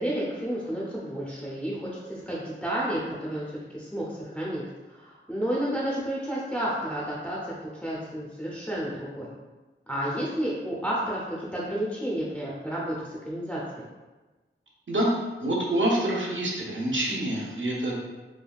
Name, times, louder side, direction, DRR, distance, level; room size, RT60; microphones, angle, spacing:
voice 1, 0.0-9.3 9.9-13.6, right 1 dB, 5° left, -6 dB, 0.5 m, -31 dB
voice 2, 15.4-18.1, right 1 dB, 70° right, -4 dB, 0.7 m, -26 dB
3.4 x 2.2 x 2.3 m, 1.2 s
wide cardioid pair, 50°, 21 cm